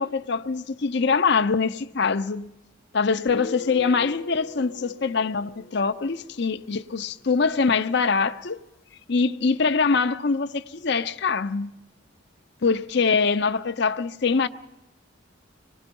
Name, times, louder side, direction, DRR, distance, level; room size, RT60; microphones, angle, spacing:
voice 1, 0.0-2.5 2.9-8.6 9.1-11.7 12.6-14.5, left 4 dB, 55° left, 0.6 m, -23 dB
Guitar, 3.3-6.8, left 3 dB, 90° left, 1.0 m, -40 dB
25.5 x 19.5 x 5.3 m
head